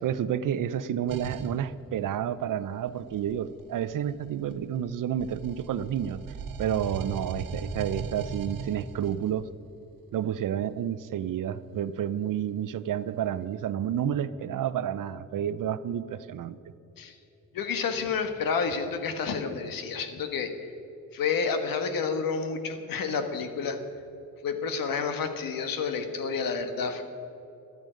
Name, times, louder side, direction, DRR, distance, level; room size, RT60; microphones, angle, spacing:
voice 1, 0.0-6.2 6.6-9.5 10.1-16.6, right 9 dB, 70° right, 14 dB, 0.7 m, -30 dB
sound 1, 1.1-1.6 2.9-4.8 5.2-9.3, right 4 dB, 85° right, 1.2 m, -38 dB
voice 2, 17.5-20.7 21.1-23.8 24.4-27.0, left 5 dB, 85° left, 7 dB, 1.4 m, -30 dB
13.0 x 13.0 x 5.1 m, 2.9 s
cardioid pair, 90°, 33 cm